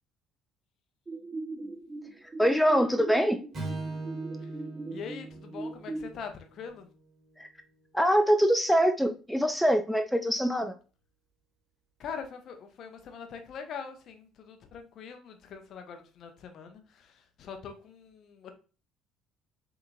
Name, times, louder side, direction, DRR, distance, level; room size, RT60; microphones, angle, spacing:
sound 1, 1.1-6.1, right 2 dB, 20° right, 0.7 m, -40 dB
voice 1, 2.4-3.4 7.4-7.5 7.9-10.7, equal, ahead, 0.3 m, -24 dB
Strum, 3.5-7.9, right 3 dB, 40° right, 1.0 m, -41 dB
voice 2, 4.9-6.9 12.0-18.5, left 6 dB, 50° left, 0.5 m, -43 dB
2.7 x 2.5 x 2.4 m
figure-of-eight pair, 55°, 0 cm